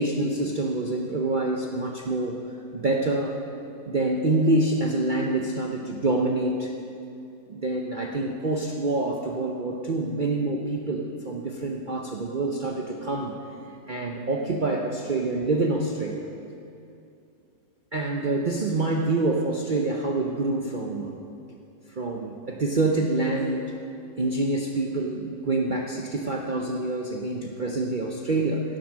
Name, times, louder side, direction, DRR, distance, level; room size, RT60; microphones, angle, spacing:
voice 1, 0.0-2.4 2.7-3.3 3.9-6.7 7.5-13.3 13.9-16.3 17.9-21.2 22.0-23.7 24.2-28.6, right 2 dB, 85° right, 0 dB, 0.4 m, -26 dB
16.5 x 7.8 x 6.2 m, 2.6 s
omnidirectional pair, 1.9 m